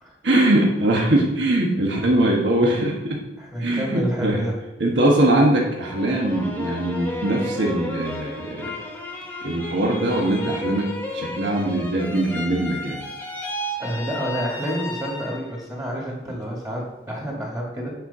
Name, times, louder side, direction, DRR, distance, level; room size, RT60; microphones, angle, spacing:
voice 1, 0.2-3.2 3.6-4.4 4.8-8.7 9.4-13.0, right 1 dB, 80° right, -1 dB, 1.3 m, -21 dB
voice 2, 3.4-4.5 13.8-17.9, equal, 20° right, -2 dB, 2.0 m, -29 dB
sound 1, 5.8-15.6 16.0-16.7, left 1 dB, 10° left, 1.1 m, -33 dB
9.1 x 4.5 x 5.6 m, 1.0 s
head